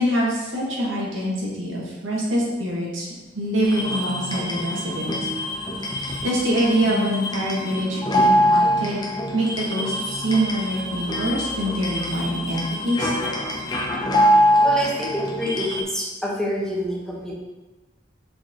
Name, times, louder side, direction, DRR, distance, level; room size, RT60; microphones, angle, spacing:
voice 1, 0.0-3.1 3.3-5.1 6.0-9.0 9.3-13.1, right 1 dB, 80° right, -5 dB, 2.0 m, -25 dB
sound 1, 3.6-15.8, equal, 20° left, 0.9 m, -24 dB
voice 2, 14.6-17.3, equal, 5° left, -5 dB, 1.2 m, -27 dB
6.3 x 5.1 x 3.9 m, 1.1 s
head